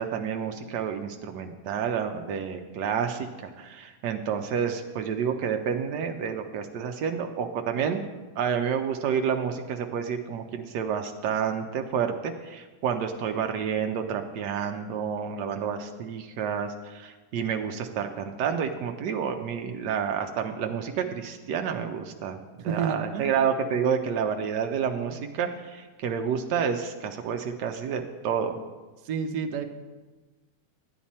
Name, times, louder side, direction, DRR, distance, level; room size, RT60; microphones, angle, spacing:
voice 1, 0.0-3.3 3.6-8.0 8.4-22.4 22.6-28.6, right 7 dB, 90° right, 5 dB, 1.3 m, -29 dB
voice 2, 22.7-23.4 25.1-25.2 29.0-29.6, right 6 dB, 75° right, 6 dB, 1.3 m, -30 dB
11.0 x 8.8 x 4.2 m, 1.3 s
omnidirectional pair, 1.8 m